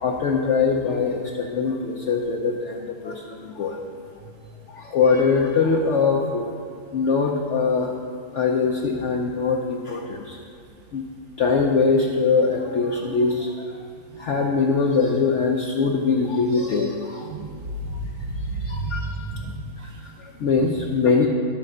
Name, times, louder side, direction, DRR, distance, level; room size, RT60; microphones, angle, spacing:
voice 1, 0.0-3.8 4.7-6.5 6.9-7.9 8.3-10.4 10.9-11.0 11.4-13.8 14.2-17.3 18.6-19.1 19.8-21.3, left 4 dB, 55° left, -1 dB, 0.9 m, -22 dB
voice 2, 17.8-19.5 19.8-20.0, right 2 dB, 65° right, 2 dB, 1.5 m, -30 dB
12.0 x 4.7 x 6.5 m, 2.5 s
omnidirectional pair, 1.7 m